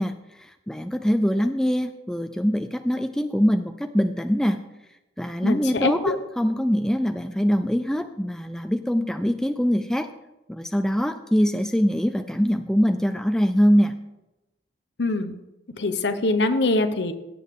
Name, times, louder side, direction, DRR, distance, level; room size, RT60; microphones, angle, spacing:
voice 1, 0.0-4.6 5.2-10.1 10.5-14.0, equal, 5° left, 8 dB, 0.3 m, -23 dB
voice 2, 5.4-6.2 15.0-15.3 15.8-17.1, left 2 dB, 65° left, 9 dB, 0.9 m, -23 dB
16.0 x 7.5 x 3.6 m, 0.98 s
head